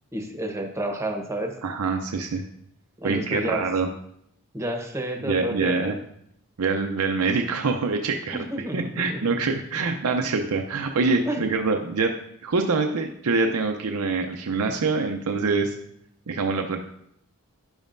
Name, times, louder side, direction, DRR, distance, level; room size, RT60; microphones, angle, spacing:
voice 1, 0.1-1.5 3.0-3.6 4.5-5.9 8.3-9.3 9.8-10.1 11.3-11.5, right 1 dB, 15° right, 3 dB, 1.0 m, -30 dB
voice 2, 1.6-2.4 3.0-3.9 5.2-5.9 6.6-8.4 8.7-12.1 12.4-15.7 16.3-16.8, right 4 dB, 85° right, 3 dB, 0.6 m, -25 dB
10.5 x 7.1 x 2.6 m, 0.74 s
head